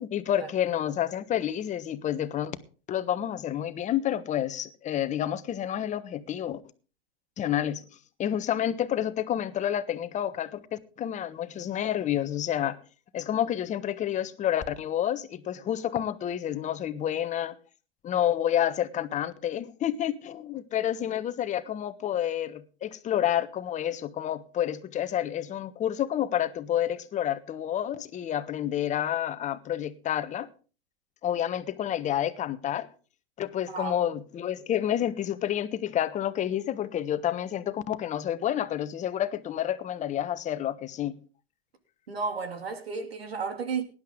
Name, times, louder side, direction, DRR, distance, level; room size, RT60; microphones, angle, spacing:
voice 1, 0.0-2.6 2.9-6.6 7.4-7.8 8.2-12.8 13.1-17.5 18.0-30.5 31.2-32.9 33.4-41.2, left 10 dB, 25° left, 1.2 m, -29 dB
voice 2, 42.1-43.8, right 5 dB, 85° right, 2.8 m, -32 dB
18.5 x 11.0 x 3.8 m
hypercardioid pair, 115°, 30 cm